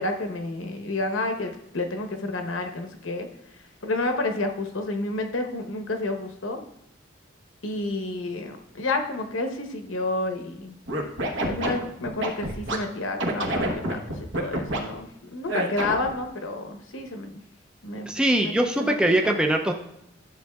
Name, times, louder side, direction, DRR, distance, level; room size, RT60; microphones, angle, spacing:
voice 1, 0.0-3.3 3.8-6.6 7.6-10.7 11.4-14.0 14.3-17.4 17.8-18.1 18.4-18.5 18.8-19.4, left 2 dB, 80° left, 5 dB, 0.9 m, -30 dB
Scratching (performance technique), 10.9-12.8 13.2-14.8 15.5-16.1, right 1 dB, 70° right, 1.1 m, -27 dB
voice 2, 18.1-19.7, right 1 dB, 5° right, 2 dB, 0.4 m, -22 dB
11.5 x 7.1 x 2.3 m, 0.76 s
head